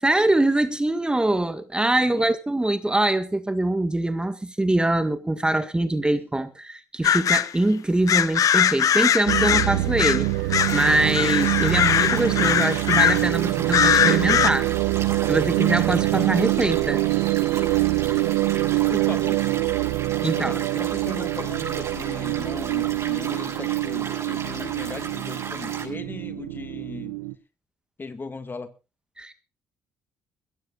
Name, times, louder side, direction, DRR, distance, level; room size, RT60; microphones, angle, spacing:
voice 1, 0.0-14.7 15.3-17.0 20.2-20.6 29.2-29.3, right 1 dB, 15° right, 1.8 m, -23 dB
voice 2, 1.9-2.3 18.9-19.4 20.3-27.2 28.0-28.7, left 4 dB, 30° left, 2.1 m, -37 dB
sound 1, 7.0-7.5 8.1-10.3 10.5-13.3 13.7-14.5, left 9 dB, 55° left, 0.9 m, -21 dB
sound 2, 9.3-27.3, right 19 dB, 85° right, 0.9 m, -25 dB
sound 3, 10.6-25.8, right 4 dB, 40° right, 6.9 m, -36 dB
22.0 x 16.0 x 2.5 m
hypercardioid pair, 60°, 7 cm